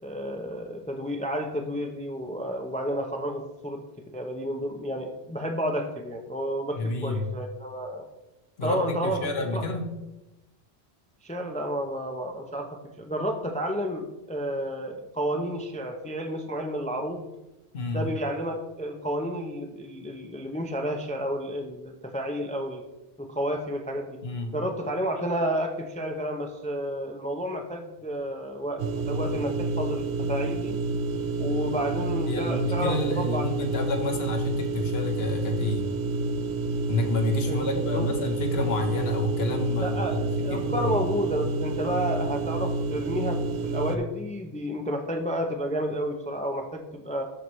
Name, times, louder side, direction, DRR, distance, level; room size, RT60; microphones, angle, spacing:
voice 1, 0.0-3.8 4.1-8.1 8.6-9.2 9.5-9.6 11.2-12.7 13.0-17.3 17.9-22.8 23.2-24.2 24.5-30.8 31.4-33.5 37.5-38.1 39.8-47.2, equal, 10° left, 4 dB, 0.4 m, -31 dB
voice 2, 6.7-7.3 8.6-9.9 17.7-18.0 24.2-24.5 32.3-35.9 36.9-40.9, left 2 dB, 75° left, 4 dB, 1.2 m, -29 dB
sound 1, 28.8-44.0, right 3 dB, 90° right, 0.9 m, -29 dB
13.5 x 4.7 x 3.1 m, 1.0 s
omnidirectional pair, 1.1 m